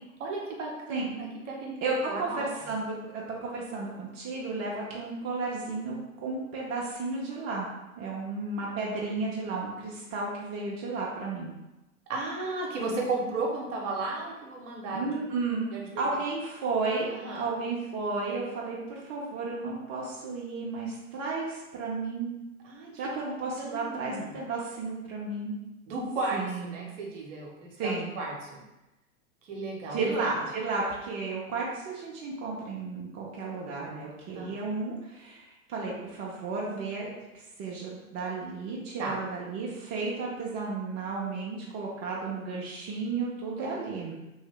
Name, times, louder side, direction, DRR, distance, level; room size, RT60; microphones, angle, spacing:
voice 1, 0.2-0.9 1.2-1.8 2.1-2.4 12.1-15.1 15.7-16.0 17.1-17.4 22.6-23.2 23.6-24.4 25.9-26.4 26.7-28.6 29.4-30.3 34.3-34.6 39.0-39.1 43.6-43.7, right 3 dB, 60° right, -2 dB, 1.0 m, -34 dB
voice 2, 1.8-7.7 8.0-11.5 14.9-15.7 16.0-22.4 22.9-25.6 26.3-26.8 27.8-28.1 29.9-37.1 37.6-44.1, right 3 dB, 35° right, -4 dB, 0.7 m, -33 dB
3.0 x 2.7 x 3.3 m, 1.0 s
figure-of-eight pair, 90°, 42 cm